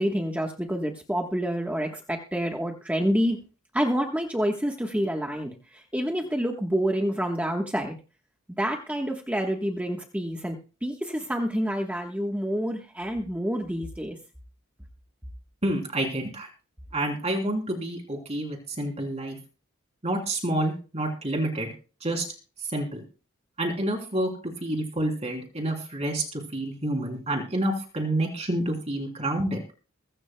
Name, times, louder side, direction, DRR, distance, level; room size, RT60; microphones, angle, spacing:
voice 1, 0.0-3.4 3.7-8.0 8.6-10.6 10.8-14.2, equal, 5° right, 1 dB, 1.3 m, -28 dB
voice 2, 15.6-16.5 16.9-19.4 20.0-21.7 22.0-22.2 22.6-23.0 23.6-29.6, right 1 dB, 30° right, 1 dB, 3.2 m, -28 dB
23.0 x 12.5 x 2.3 m, 0.35 s
head